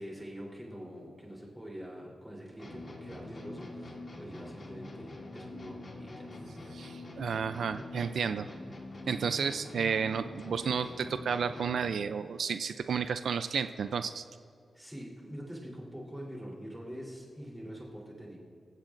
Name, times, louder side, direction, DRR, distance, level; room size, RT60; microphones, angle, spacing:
voice 1, 0.0-6.3 14.7-18.4, equal, 5° right, -4 dB, 3.5 m, -44 dB
sound 1, 2.6-12.0, left 2 dB, 40° left, 2.4 m, -45 dB
voice 2, 6.7-8.5 9.1-14.2, right 6 dB, 70° right, 10 dB, 0.4 m, -32 dB
26.0 x 16.0 x 2.6 m, 2.4 s
wide cardioid pair, 170°, 0 cm